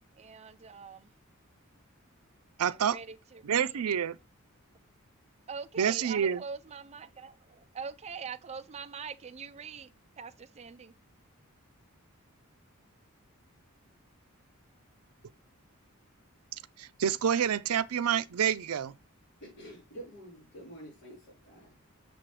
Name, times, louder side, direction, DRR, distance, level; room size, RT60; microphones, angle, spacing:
voice 1, 0.2-1.1 2.7-3.8 5.5-9.9 10.2-10.9, right 5 dB, 30° right, 0.4 m, -43 dB
voice 2, 2.6-3.0 3.4-4.2 5.8-6.4 16.8-18.9, right 8 dB, 90° right, 0.5 m, -28 dB
voice 3, 19.4-21.9, right 1 dB, 50° left, 4.2 m, -48 dB
6.8 x 6.1 x 3.2 m
head